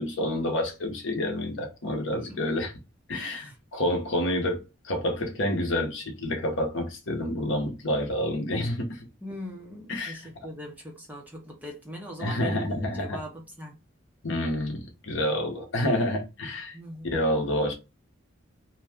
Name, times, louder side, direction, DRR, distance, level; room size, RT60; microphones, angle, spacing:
voice 1, 0.0-2.7 3.1-9.1 9.9-10.2 12.2-13.2 14.2-16.8 17.1-17.7, left 1 dB, 60° left, 0.9 m, -28 dB
voice 2, 3.1-3.6 9.2-13.8 16.7-17.2, equal, 10° right, 0.7 m, -41 dB
2.7 x 2.2 x 3.5 m
head